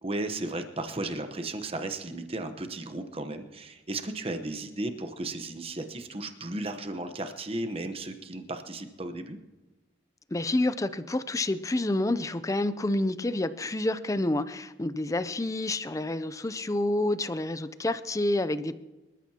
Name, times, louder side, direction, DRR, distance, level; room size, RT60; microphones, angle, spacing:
voice 1, 0.0-9.4, right 2 dB, 30° right, 7 dB, 1.0 m, -35 dB
voice 2, 10.3-18.8, left 2 dB, 15° left, 12 dB, 0.5 m, -28 dB
26.0 x 13.5 x 2.9 m, 1.1 s
head